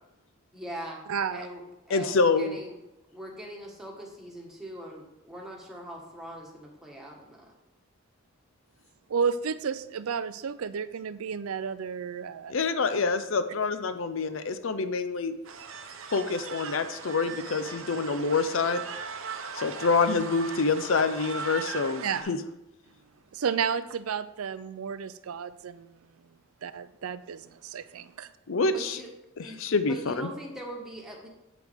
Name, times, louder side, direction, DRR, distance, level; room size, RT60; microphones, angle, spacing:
voice 1, 0.5-1.0 1.3-2.8 3.1-7.5 28.7-29.1 29.4-31.3, right 1 dB, ahead, -2 dB, 1.6 m, -42 dB
voice 2, 1.1-1.5 9.1-12.5 22.0-22.4 23.3-25.9 26.6-28.3, right 6 dB, 90° right, 13 dB, 0.5 m, -32 dB
voice 3, 1.9-2.6 12.5-15.4 16.1-18.8 19.5-22.4 28.5-29.0 29.4-30.3, left 4 dB, 65° left, 11 dB, 0.6 m, -26 dB
sound 1, 15.4-22.2, right 5 dB, 70° right, 0.8 m, -39 dB
8.2 x 8.0 x 3.6 m, 0.94 s
head